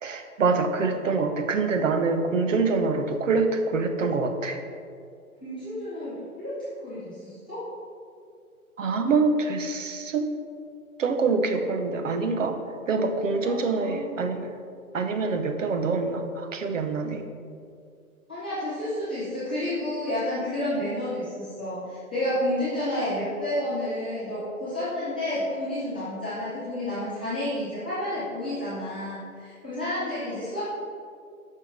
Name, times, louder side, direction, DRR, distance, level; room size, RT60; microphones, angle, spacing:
voice 1, 0.0-4.6 8.8-10.3 11.0-12.6 12.9-14.6 14.9-17.2, right 4 dB, 60° right, 6 dB, 0.8 m, -25 dB
voice 2, 5.4-6.5 6.8-7.7 13.4-14.2 18.3-30.6, left 1 dB, 5° left, -15 dB, 0.5 m, -30 dB
6.1 x 5.6 x 5.2 m, 2.3 s
hypercardioid pair, 155°, 44 cm